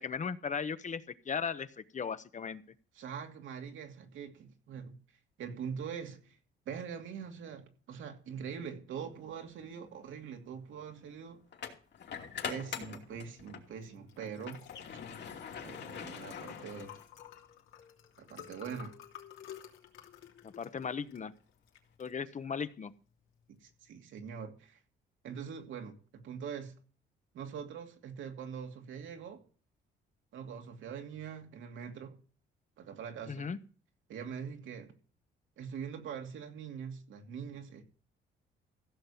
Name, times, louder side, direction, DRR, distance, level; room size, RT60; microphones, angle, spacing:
voice 1, 0.0-2.6 20.4-21.3 22.0-22.9 33.3-33.6, left 6 dB, 40° left, 1.0 m, -37 dB
voice 2, 3.0-5.0 5.4-6.4 6.7-11.4 12.5-14.6 15.6-16.9 18.2-18.9 23.6-24.8 25.2-26.7 27.3-29.4 30.3-32.2 32.8-33.5 34.1-34.9 35.6-37.8, right 7 dB, 80° right, 2.7 m, -43 dB
sound 1, 9.5-9.7 11.5-13.7 14.1-17.3, left 7 dB, 60° left, 2.7 m, -43 dB
Liquid, 13.8-23.9, left 10 dB, 85° left, 3.0 m, -53 dB
15.5 x 6.7 x 5.8 m
cardioid pair, 90°, 20 cm